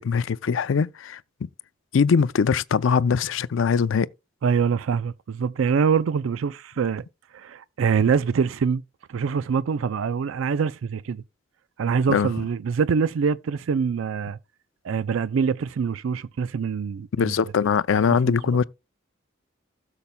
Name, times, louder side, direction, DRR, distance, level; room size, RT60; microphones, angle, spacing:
voice 1, 0.0-1.5 1.9-4.1 12.1-12.3 17.2-18.6, left 6 dB, 70° left, 0.4 m, -22 dB
voice 2, 4.4-7.0 7.3-8.8 9.1-11.2 11.8-14.4 14.8-17.3 18.2-18.4, right 6 dB, 85° right, 0.4 m, -24 dB
16.0 x 7.0 x 2.2 m
head